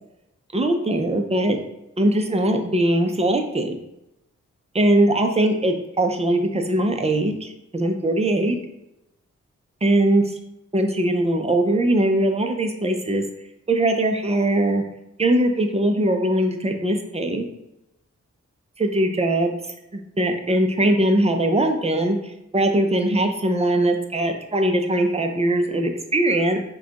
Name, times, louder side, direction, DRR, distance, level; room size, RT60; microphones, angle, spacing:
voice 1, 0.5-1.6 2.0-3.8 4.8-8.6 9.8-10.2 10.7-13.2 13.7-14.8 15.2-17.5 18.8-19.6 19.9-22.2 22.5-26.6, right 1 dB, 20° right, 4 dB, 0.6 m, -21 dB
4.7 x 2.3 x 2.9 m, 0.87 s
cardioid pair, 55°, 30 cm